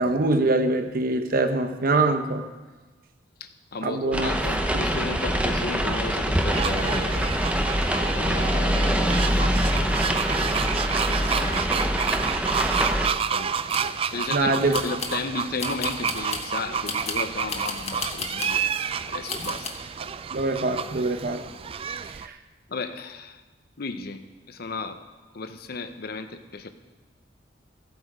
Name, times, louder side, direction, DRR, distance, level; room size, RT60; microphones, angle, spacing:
voice 1, 0.0-2.5 3.8-4.3 14.3-14.8 20.3-21.4 22.2-22.3, right 2 dB, 55° right, 8 dB, 0.9 m, -23 dB
voice 2, 3.4-7.3 8.1-10.2 11.1-11.7 13.3-13.6 14.1-18.6 19.1-19.7 22.7-23.4 23.8-25.0 25.3-26.7, left 3 dB, 60° left, 9 dB, 0.8 m, -34 dB
sound 1, 4.1-13.1, equal, 5° right, 0.8 m, -24 dB
sound 2, 6.5-22.3, right 7 dB, 30° right, 0.3 m, -30 dB
sound 3, 13.4-13.9 14.7-15.2 15.6-16.5 16.9-18.6 19.3-19.7, left 4 dB, 40° left, 1.3 m, -34 dB
14.5 x 8.1 x 5.0 m, 1.3 s
head